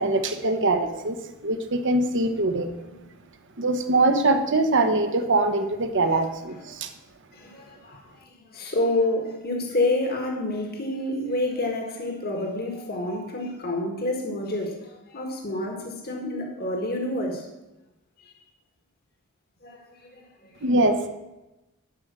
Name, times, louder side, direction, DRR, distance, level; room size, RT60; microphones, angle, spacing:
voice 1, 0.0-2.7 3.6-6.9 20.6-21.1, right 2 dB, 55° right, 7 dB, 1.1 m, -23 dB
voice 2, 7.3-8.0 8.5-17.5 19.6-20.6, left 2 dB, 45° left, 2 dB, 1.7 m, -28 dB
11.5 x 5.1 x 7.5 m, 1.0 s
head